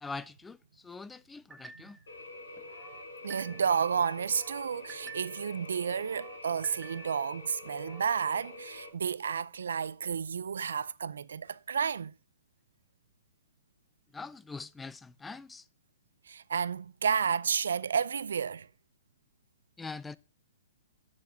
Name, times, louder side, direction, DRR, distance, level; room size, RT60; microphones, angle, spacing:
voice 1, 0.0-2.0 14.1-15.6 19.8-20.2, left 4 dB, 10° left, 0.4 m, -43 dB
sound 1, 1.5-2.1 2.6-3.8 4.2-5.5 5.9-7.3 7.7-8.2, right 7 dB, 10° right, 1.1 m, -51 dB
sound 2, 2.1-8.9, left 2 dB, 90° left, 4.6 m, -46 dB
voice 2, 3.2-12.1 16.3-18.7, right 7 dB, 85° right, 0.4 m, -31 dB
7.1 x 6.7 x 7.0 m
hypercardioid pair, 150°, 0 cm